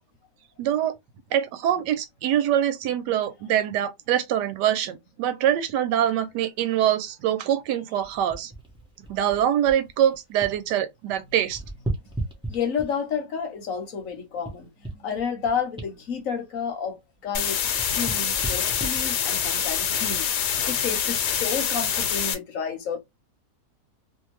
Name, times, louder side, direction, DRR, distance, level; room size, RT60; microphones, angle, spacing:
voice 1, 0.6-0.9 1.3-8.5 9.0-11.6, right 10 dB, 90° right, 1.2 m, -24 dB
sound 1, 8.0-10.7 11.0-13.1 13.7-17.2 17.5-20.3 20.9-21.1, right 2 dB, 5° right, 0.4 m, -37 dB
voice 2, 12.5-17.6 18.0-23.0, left 6 dB, 60° left, 1.0 m, -31 dB
sound 2, 17.3-22.3, left 8 dB, 85° left, 1.2 m, -25 dB
2.7 x 2.5 x 3.0 m
omnidirectional pair, 1.8 m